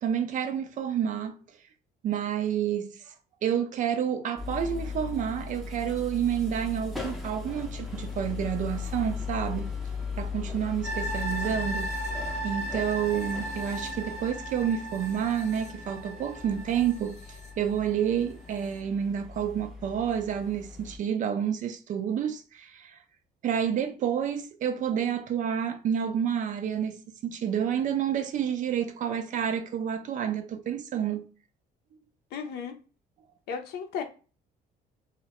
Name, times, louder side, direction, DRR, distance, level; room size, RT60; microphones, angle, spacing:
voice 1, 0.0-1.4 2.0-3.1 3.4-9.7 10.2-11.9 12.4-17.2 17.6-23.0 23.4-31.3, right 8 dB, 50° right, 0.4 m, -29 dB
sound 1, 4.4-21.0, left 4 dB, ahead, 0.5 m, -38 dB
sound 2, 10.8-18.1 18.5-18.6, right 2 dB, 45° left, 0.7 m, -37 dB
voice 2, 32.3-32.8 33.5-34.0, left 6 dB, 75° left, 0.5 m, -34 dB
2.2 x 2.1 x 2.8 m
cardioid pair, 110°, 17 cm